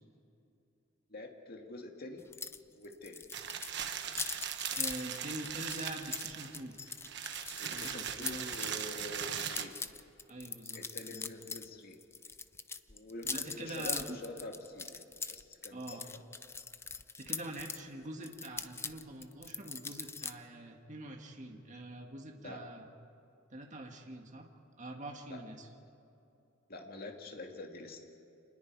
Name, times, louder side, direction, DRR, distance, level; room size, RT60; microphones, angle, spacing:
voice 1, 1.1-2.2 2.7-3.2 7.6-9.7 10.7-12.0 12.9-16.0 22.4-22.6 25.3-25.4 26.7-28.0, left 2 dB, 50° left, 2 dB, 2.1 m, -46 dB
sound 1, 2.3-2.6 2.8-8.7 9.2-11.7 11.9-17.8 18.2-20.3, left 5 dB, 10° left, 0.5 m, -41 dB
sound 2, 3.3-9.7, right 8 dB, 60° right, 1.2 m, -39 dB
voice 2, 4.7-6.7 7.7-8.5 10.3-11.3 13.2-14.2 15.7-16.1 17.2-22.9 23.5-24.5 24.8-25.7, right 1 dB, 35° right, 2 dB, 1.8 m, -45 dB
27.5 x 20.5 x 4.7 m, 2.8 s
head